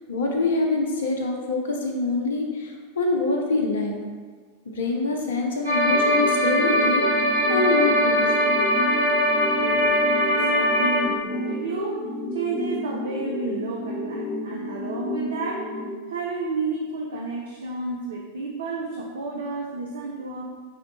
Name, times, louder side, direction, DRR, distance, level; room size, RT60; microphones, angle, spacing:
voice 1, 0.1-3.9 4.7-8.3 9.5-9.9, left 3 dB, 65° left, 1 dB, 0.5 m, -25 dB
sound 1, 5.6-11.0, equal, 85° right, 1.1 m, -21 dB
sound 2, 5.9-15.9, left 1 dB, 20° left, 1.3 m, -31 dB
voice 2, 10.2-12.0 12.3-15.7 16.1-20.4, right 3 dB, 65° right, -2 dB, 0.4 m, -31 dB
4.9 x 2.1 x 2.9 m, 1.5 s
figure-of-eight pair, 90°, 0 cm